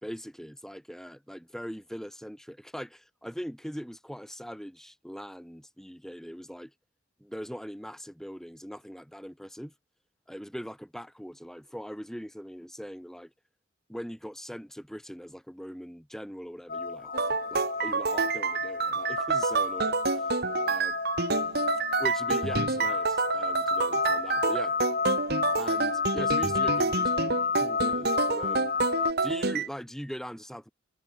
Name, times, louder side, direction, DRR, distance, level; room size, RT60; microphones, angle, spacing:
voice 1, 0.0-6.7 7.2-9.7 10.3-13.3 13.9-20.3 20.7-20.9 22.0-24.7 25.6-28.7 29.2-30.7, equal, ahead, 8.0 m, -41 dB
sound 1, 16.7-29.1, left 5 dB, 40° left, 1.8 m, -31 dB
sound 2, 17.1-29.7, right 4 dB, 50° right, 1.4 m, -28 dB
head